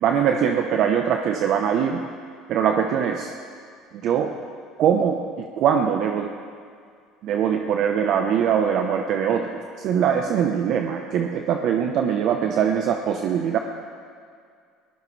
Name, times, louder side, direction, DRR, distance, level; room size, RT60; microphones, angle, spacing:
voice 1, 0.0-2.0 2.5-3.3 4.0-4.3 4.8-5.2 5.6-6.3 7.2-9.5 9.8-13.6, right 8 dB, 60° right, 4 dB, 1.0 m, -22 dB
20.0 x 17.0 x 3.4 m, 2.2 s
supercardioid pair, 90°, 0 cm